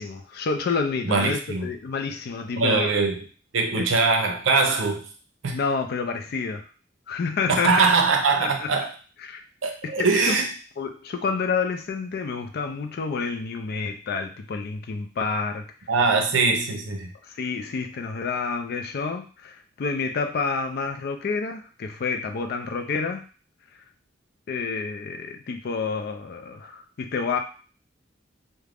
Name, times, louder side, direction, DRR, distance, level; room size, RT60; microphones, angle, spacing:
voice 1, 0.0-2.9 5.5-6.6 7.1-7.7 8.4-8.7 9.2-9.4 9.8-10.4 10.8-15.6 17.3-23.2 24.5-27.4, left 4 dB, 55° left, 5 dB, 0.4 m, -29 dB
voice 2, 1.0-1.7 2.6-3.3 3.5-5.1 5.4-5.6 7.5-8.9 9.6-10.5 15.9-17.1, right 4 dB, 85° right, 4 dB, 0.5 m, -22 dB
2.4 x 2.1 x 3.3 m, 0.37 s
head